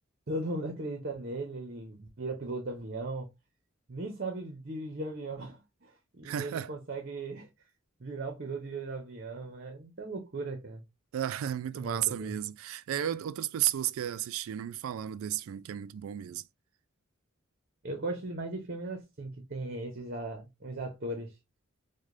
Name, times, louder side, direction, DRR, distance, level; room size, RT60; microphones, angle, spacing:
voice 1, 0.3-3.3 3.9-7.5 8.0-10.8 11.7-12.3 17.8-21.4, right 2 dB, 50° right, 0.7 m, -37 dB
voice 2, 6.2-6.7 11.1-16.4, right 11 dB, 80° right, 0.3 m, -33 dB
4.8 x 2.2 x 2.5 m
head